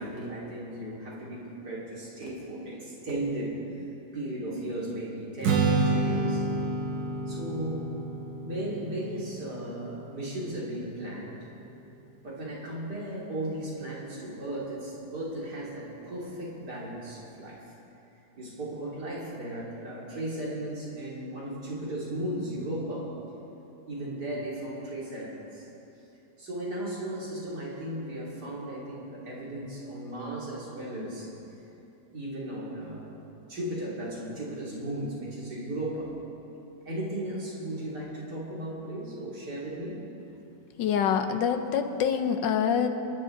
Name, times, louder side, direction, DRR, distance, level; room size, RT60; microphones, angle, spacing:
voice 1, 0.0-3.6 4.1-6.4 7.3-7.9 8.4-11.5 12.2-17.7 18.4-23.1 23.9-25.7 26.4-31.4 32.1-33.1 33.5-36.1 36.9-40.0, right 1 dB, 65° right, -6 dB, 3.6 m, -36 dB
Strum, 5.4-11.7, right 3 dB, 90° right, 1.7 m, -30 dB
voice 2, 40.8-42.9, left 7 dB, 90° left, 7 dB, 1.5 m, -25 dB
26.0 x 10.5 x 3.9 m, 2.9 s
omnidirectional pair, 1.9 m